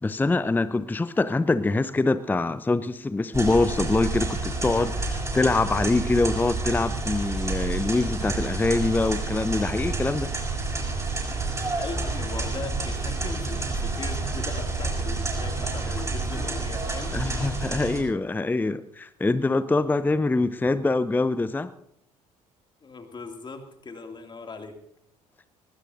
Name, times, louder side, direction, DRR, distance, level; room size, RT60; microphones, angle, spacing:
voice 1, 0.0-10.3 17.1-21.7, left 3 dB, 10° left, 14 dB, 0.6 m, -24 dB
sound 1, 3.3-18.0, right 3 dB, 15° right, 7.4 m, -29 dB
voice 2, 11.8-17.1 22.8-24.8, left 4 dB, 25° left, 5 dB, 2.5 m, -39 dB
20.0 x 19.5 x 2.7 m, 0.73 s
figure-of-eight pair, 55°, 18 cm